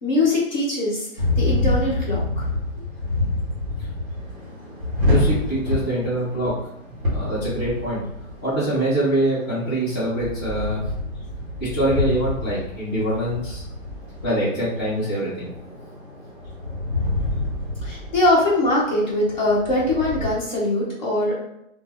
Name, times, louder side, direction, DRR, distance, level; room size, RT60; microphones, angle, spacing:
voice 1, 0.0-2.5 17.8-21.4, left 1 dB, 35° left, -6 dB, 1.1 m, -22 dB
sound 1, 1.2-20.3, left 2 dB, 15° right, 1.1 m, -27 dB
voice 2, 5.0-6.5 7.0-8.0 8.4-10.8 11.6-13.6 14.2-15.5, right 1 dB, 15° left, -13 dB, 1.0 m, -24 dB
2.6 x 2.1 x 3.7 m, 0.78 s
hypercardioid pair, 165°, 41 cm